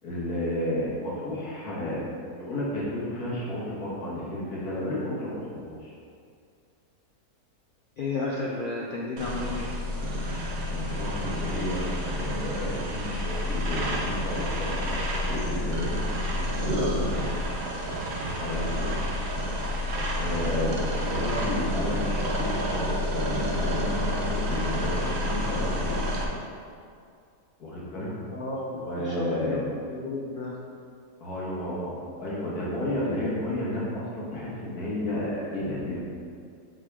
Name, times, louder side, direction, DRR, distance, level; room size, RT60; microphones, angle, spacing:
voice 1, 0.0-5.9 10.6-16.0 16.6-17.5 17.8-18.9 20.2-26.0 27.6-28.1 28.7-29.6 31.2-36.0, left 1 dB, 85° left, -6 dB, 2.1 m, -32 dB
voice 2, 8.0-9.7 28.3-30.6, left 3 dB, 70° left, -2 dB, 0.5 m, -32 dB
sound 1, 9.2-26.2, left 1 dB, 55° right, 0.9 m, -29 dB
6.2 x 4.2 x 4.7 m, 2.3 s
omnidirectional pair, 1.6 m